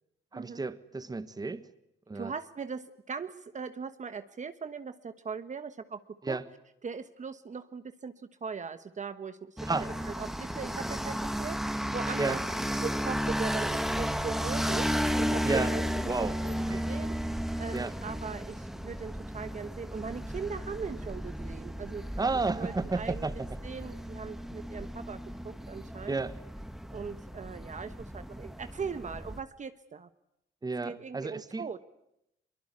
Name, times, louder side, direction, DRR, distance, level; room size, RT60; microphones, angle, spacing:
voice 1, 0.3-1.7 2.1-2.3 6.2-6.4 9.7-9.9 12.2-12.4 15.4-15.7 16.1-16.4 16.7-16.8 17.7-17.9 22.2-23.5 26.1-26.3 30.6-31.7, right 3 dB, 20° right, 13 dB, 1.5 m, -32 dB
voice 2, 2.1-6.0 6.3-6.4 6.8-12.4 12.8-14.9 15.2-15.8 16.2-22.0 22.6-23.2 23.6-26.2 26.9-30.1 30.8-31.8, right 5 dB, 40° right, 10 dB, 1.3 m, -40 dB
sound 1, 9.6-29.4, equal, ahead, 1.5 m, -34 dB
23.0 x 22.5 x 9.7 m, 0.81 s
cardioid pair, 90°, 20 cm